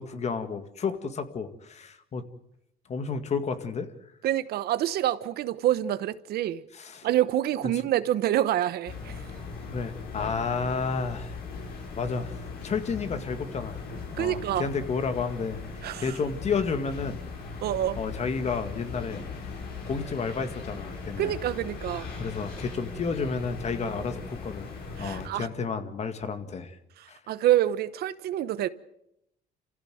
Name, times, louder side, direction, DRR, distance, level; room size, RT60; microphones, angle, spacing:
voice 1, 0.0-2.2 2.9-3.9 6.7-7.1 9.7-11.4 12.0-12.4 12.6-13.9 14.2-15.6 16.0-17.2 18.0-19.2 19.9-21.3 22.2-24.7 25.0-26.8 27.1-27.2, left 5 dB, 40° left, 2.1 m, -31 dB
voice 2, 4.2-6.6 7.0-9.2 14.2-14.7 15.8-16.2 17.6-18.0 21.2-22.1 25.0-25.5 27.0-28.7, right 12 dB, 70° right, 1.0 m, -27 dB
sound 1, 8.9-25.3, left 4 dB, 70° left, 6.5 m, -39 dB
28.0 x 15.5 x 7.8 m
cardioid pair, 110°, 17 cm